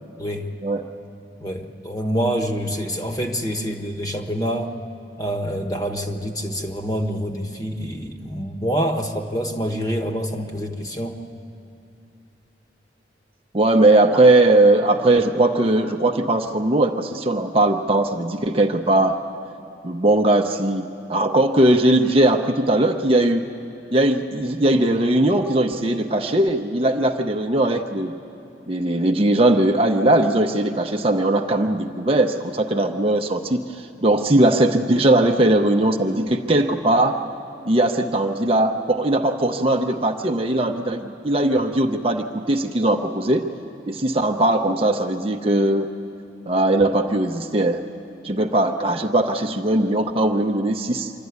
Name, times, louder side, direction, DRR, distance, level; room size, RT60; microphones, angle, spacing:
voice 1, 0.2-0.5 1.4-4.7 5.2-11.2, equal, 20° left, 4 dB, 1.2 m, -26 dB
voice 2, 13.5-19.2 19.8-23.5 23.9-28.1 28.7-37.2 37.6-43.5 43.9-45.9 46.5-47.8 48.2-51.1, right 1 dB, 30° right, 4 dB, 0.7 m, -19 dB
25.5 x 12.5 x 9.5 m, 2.6 s
head